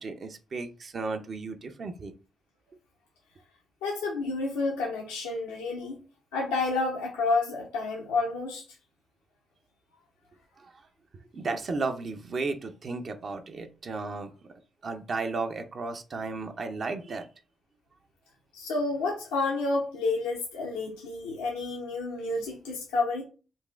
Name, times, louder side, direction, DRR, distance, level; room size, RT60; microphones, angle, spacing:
voice 1, 0.0-2.1 10.6-10.7 11.3-14.3 14.8-17.3, right 3 dB, 55° right, 0.5 m, -34 dB
voice 2, 3.8-6.0 6.3-8.6 18.5-23.2, left 3 dB, 90° left, 0.6 m, -30 dB
3.9 x 2.4 x 2.3 m
hypercardioid pair, 45°, 0 cm